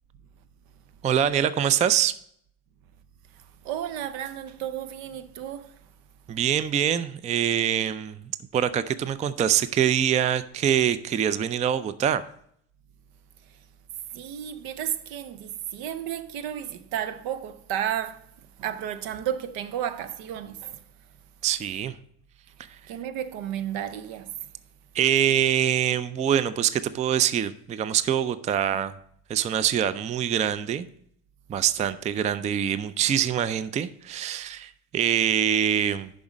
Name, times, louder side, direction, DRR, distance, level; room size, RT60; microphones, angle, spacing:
voice 1, 1.0-2.1 6.3-12.2 21.4-22.0 24.9-28.9 29.3-30.9 31.5-36.1, right 9 dB, 20° right, 0.3 m, -24 dB
voice 2, 3.6-5.7 14.1-18.3 18.6-20.8 22.9-24.3, right 10 dB, 70° right, 0.7 m, -32 dB
6.9 x 5.3 x 5.0 m
supercardioid pair, 75°, 37 cm